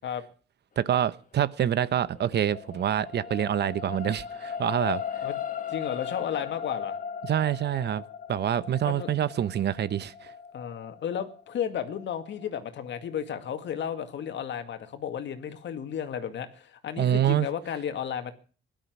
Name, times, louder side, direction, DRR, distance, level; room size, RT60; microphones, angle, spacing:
voice 1, 0.8-5.0 7.2-8.0 8.3-10.3 17.0-17.5, right 10 dB, 60° right, 0.9 m, -26 dB
sound 1, 1.9-14.2 14.8-14.9, left 8 dB, 45° left, 1.9 m, -38 dB
voice 2, 5.7-7.0 8.9-9.1 10.5-18.3, left 8 dB, 70° left, 2.1 m, -33 dB
17.5 x 11.5 x 6.1 m
cardioid pair, 115°, 19 cm